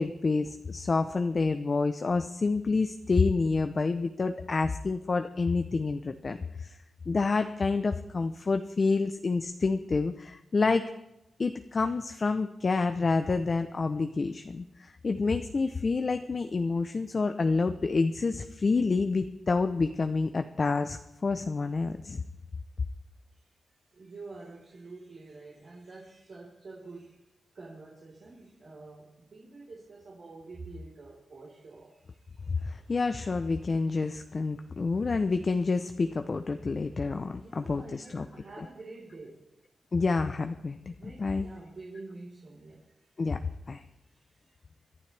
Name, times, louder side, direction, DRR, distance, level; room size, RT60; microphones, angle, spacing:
voice 1, 0.0-6.8 7.1-10.9 11.4-22.2 32.5-38.3 39.9-41.5 43.2-43.4 43.7-43.8, left 4 dB, 40° left, 8 dB, 0.7 m, -28 dB
voice 2, 23.9-27.3 27.5-32.7 34.6-34.7 37.3-39.5 40.8-43.3 44.0-44.6, right 3 dB, 60° right, -5 dB, 4.1 m, -48 dB
26.5 x 11.5 x 3.4 m, 0.90 s
wide cardioid pair, 95°, 0 cm